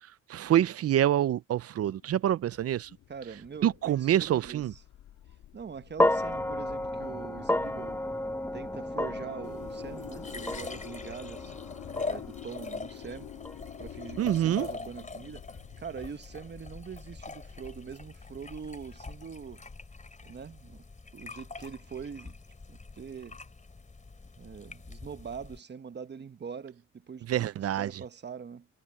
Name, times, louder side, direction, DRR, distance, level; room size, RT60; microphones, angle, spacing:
voice 1, 0.3-2.9 3.6-4.7 14.2-14.7 27.3-28.0, right 11 dB, 50° right, 0.6 m, -26 dB
sound 1, 1.7-19.5, left 12 dB, 80° left, 2.6 m, -50 dB
voice 2, 3.1-4.8 5.5-8.0 8.5-11.5 12.0-13.3 13.8-15.5 15.8-19.6 20.2-20.8 21.1-22.4 22.7-23.4 24.4-27.5 27.8-28.7, right 6 dB, 35° right, 1.3 m, -43 dB
sound 2, 6.0-14.3, left 1 dB, 10° left, 1.3 m, -32 dB
sound 3, 9.4-25.6, left 3 dB, 25° left, 3.7 m, -43 dB
cardioid pair, 90°, 30 cm